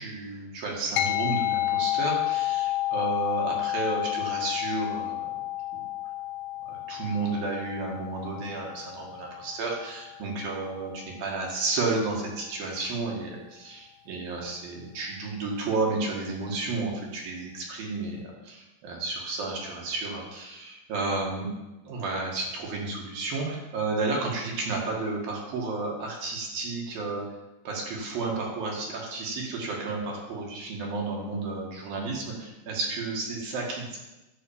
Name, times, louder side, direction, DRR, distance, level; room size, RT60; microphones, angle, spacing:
voice 1, 0.0-5.2 6.7-21.5 21.8-27.3 27.7-33.9, right 3 dB, 65° right, -2 dB, 3.5 m, -32 dB
sound 1, 1.0-10.7, left 15 dB, 80° left, 2.4 m, -31 dB
11.0 x 5.8 x 7.0 m, 1.0 s
omnidirectional pair, 4.7 m